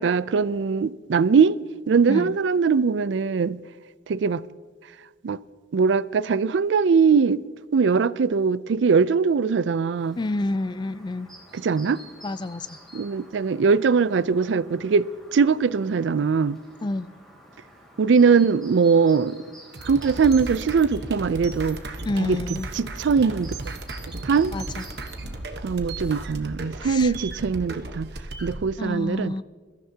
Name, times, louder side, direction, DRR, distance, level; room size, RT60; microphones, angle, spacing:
voice 1, 0.0-1.6 1.9-3.6 4.1-4.4 5.2-5.4 5.7-7.4 7.7-10.2 11.5-12.0 12.9-16.6 18.0-19.4 19.8-21.8 22.2-22.4 22.7-23.5 24.2-24.5 25.6-28.1 28.4-29.3, right 5 dB, 80° right, 0.4 m, -21 dB
voice 2, 2.1-2.4 10.2-11.3 12.2-12.8 16.8-17.1 22.0-22.7 24.5-24.8 26.8-27.1 28.8-29.4, left 2 dB, 25° left, 0.3 m, -28 dB
Chirp tweet, 10.0-25.4, right 1 dB, ahead, 3.0 m, -49 dB
sound 1, 19.7-28.6, right 2 dB, 60° right, 1.1 m, -35 dB
21.5 x 14.0 x 2.8 m
head